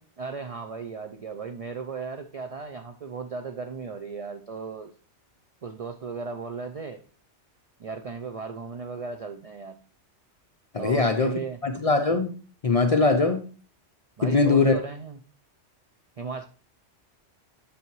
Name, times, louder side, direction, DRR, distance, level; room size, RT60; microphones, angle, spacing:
voice 1, 0.2-4.9 5.6-7.0 7.8-9.8 10.8-11.6 14.2-15.2 16.2-16.4, right 5 dB, 65° right, 0.3 m, -36 dB
voice 2, 10.7-11.3 11.6-12.3 12.6-13.4 14.2-14.7, left 3 dB, 45° left, 0.4 m, -21 dB
8.2 x 5.8 x 3.1 m
omnidirectional pair, 1.2 m